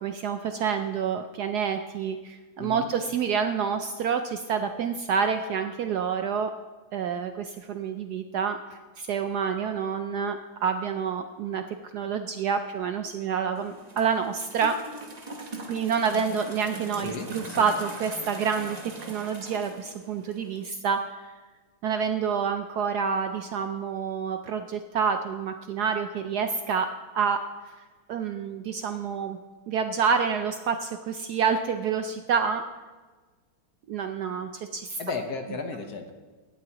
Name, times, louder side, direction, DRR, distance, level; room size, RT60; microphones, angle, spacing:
voice 1, 0.0-6.5 6.9-11.6 11.9-14.8 15.7-18.8 19.0-21.1 21.8-26.9 27.1-27.4 28.1-29.4 29.7-32.6 33.9-35.0, right 6 dB, 70° right, 7 dB, 1.0 m, -28 dB
sound 1, 13.5-20.7, right 2 dB, 25° right, 0.9 m, -41 dB
voice 2, 17.0-17.7 35.0-36.1, left 4 dB, 55° left, 5 dB, 1.5 m, -34 dB
17.0 x 11.5 x 3.0 m, 1.3 s
omnidirectional pair, 2.2 m